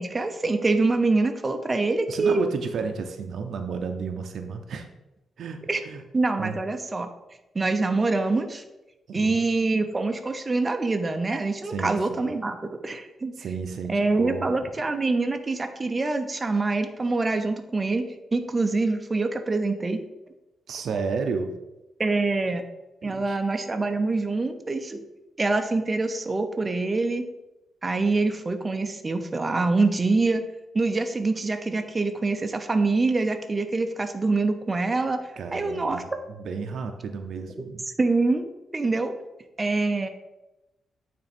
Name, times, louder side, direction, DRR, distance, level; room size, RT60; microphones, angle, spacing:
voice 1, 0.0-2.5 5.7-5.8 6.1-7.1 7.5-8.6 9.1-13.3 13.9-20.0 22.0-22.6 23.0-25.0 25.4-27.2 27.8-30.4 30.7-35.2 35.5-36.0 38.0-39.1 39.6-40.1, right 3 dB, 20° right, 6 dB, 0.5 m, -25 dB
voice 2, 2.1-4.9 5.4-6.0 6.4-6.6 9.1-9.4 11.6-12.3 13.4-14.7 20.7-21.5 23.0-23.4 35.4-37.9, right 5 dB, 65° right, 6 dB, 0.6 m, -32 dB
8.8 x 3.4 x 4.3 m, 0.98 s
wide cardioid pair, 155°, 0 cm